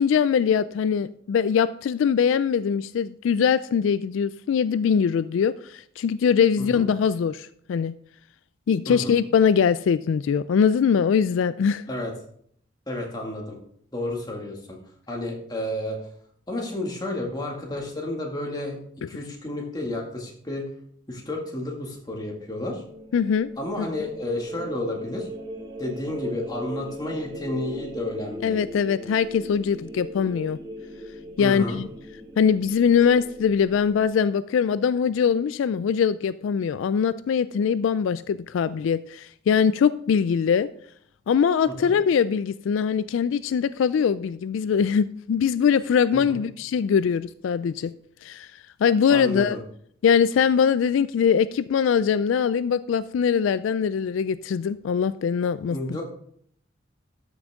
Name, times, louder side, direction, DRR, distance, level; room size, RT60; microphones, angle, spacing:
voice 1, 0.0-7.9 8.7-11.8 23.1-23.5 23.8-24.1 28.4-30.6 31.4-31.9 32.4-40.7 41.3-47.9 48.2-48.5 48.8-49.6 50.0-56.0, left 7 dB, 80° left, 15 dB, 0.3 m, -22 dB
voice 2, 12.9-13.6 13.9-14.8 15.1-16.0 16.5-18.8 19.1-20.7 21.1-22.8 23.6-25.3 25.8-28.6 31.4-31.8 41.7-41.9 46.1-46.4 49.1-49.6 55.7-56.0, left 1 dB, 20° left, 0 dB, 2.0 m, -31 dB
sound 1, 22.4-34.1, equal, 25° right, 1.2 m, -39 dB
12.5 x 6.2 x 3.6 m, 0.65 s
head